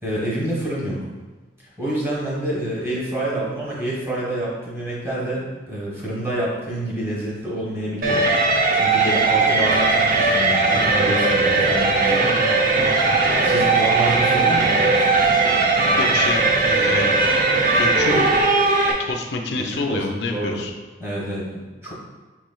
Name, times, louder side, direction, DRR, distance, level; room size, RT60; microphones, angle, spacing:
voice 1, 0.0-1.1 1.8-8.3 8.7-12.3 13.4-15.0 19.7-20.6 21.0-21.9, right 1 dB, 15° right, -6 dB, 1.1 m, -27 dB
sound 1, 8.0-18.9, right 3 dB, 50° right, 0.5 m, -18 dB
voice 2, 12.1-13.1 15.9-17.1 17.8-18.3 19.1-20.7, left 3 dB, 70° left, 2 dB, 0.4 m, -28 dB
5.8 x 3.1 x 2.2 m, 1.2 s
head